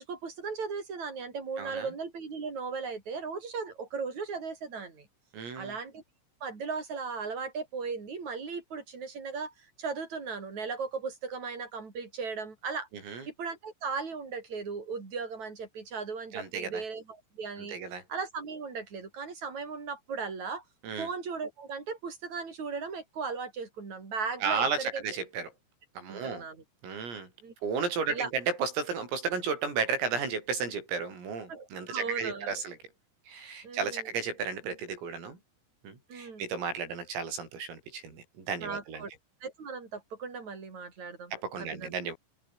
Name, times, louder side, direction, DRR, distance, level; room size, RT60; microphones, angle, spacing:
voice 1, 0.0-5.1 5.5-6.0 6.4-17.8 18.1-20.6 21.0-25.0 26.1-26.6 27.4-27.5 28.1-28.3 31.5-32.6 33.6-34.1 36.1-36.4 38.6-39.1 39.4-41.3 41.6-41.9, right 5 dB, 35° right, 6.1 m, -37 dB
voice 2, 1.6-1.9 5.3-5.8 13.1-13.3 16.3-16.8 17.6-18.0 20.8-21.1 24.4-25.5 26.0-26.4 26.8-27.3 27.6-32.8 33.3-35.4 35.8-39.1 41.3-42.2, right 5 dB, 85° right, 10.5 m, -33 dB
omnidirectional pair, 5.8 m